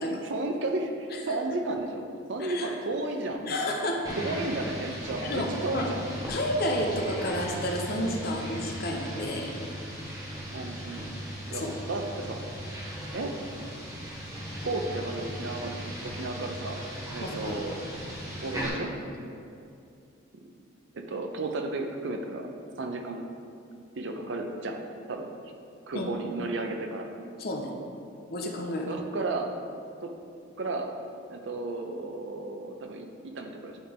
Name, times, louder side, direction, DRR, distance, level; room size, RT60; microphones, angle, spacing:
voice 1, 0.2-2.0 2.3-3.4 4.2-6.0 10.5-11.1 11.5-12.4 13.1-13.3 14.6-16.8 17.1-17.8 18.4-18.9 20.4-20.5 20.9-22.5 22.8-23.2 23.9-24.8 25.1-25.5 25.9-27.1 28.9-29.5 30.0-30.1 30.6-30.9 31.3-33.8, right 2 dB, 65° right, 4 dB, 0.5 m, -33 dB
voice 2, 2.4-2.7 3.4-4.0 5.2-5.9 6.3-9.5 11.5-11.7 17.2-17.6 25.9-26.1 27.4-27.7 28.3-28.9, left 1 dB, 50° left, 1 dB, 0.6 m, -31 dB
sound 1, 4.0-18.7, equal, 20° right, 1.0 m, -38 dB
8.9 x 3.3 x 3.4 m, 2.4 s
head